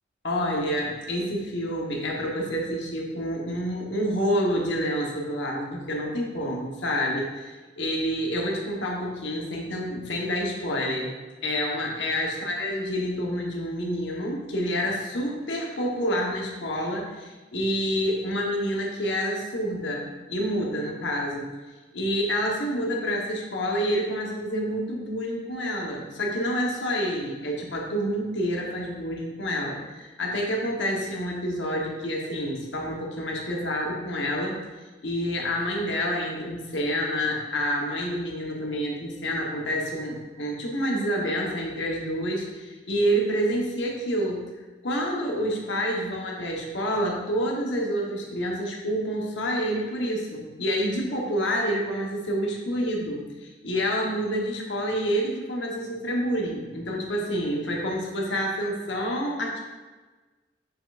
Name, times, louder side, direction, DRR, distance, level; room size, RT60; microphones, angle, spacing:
voice 1, 0.2-11.1 11.4-21.5 21.9-34.6 35.0-44.4 44.8-59.6, equal, 80° left, -1 dB, 1.2 m, -28 dB
7.0 x 5.7 x 2.5 m, 1.3 s
head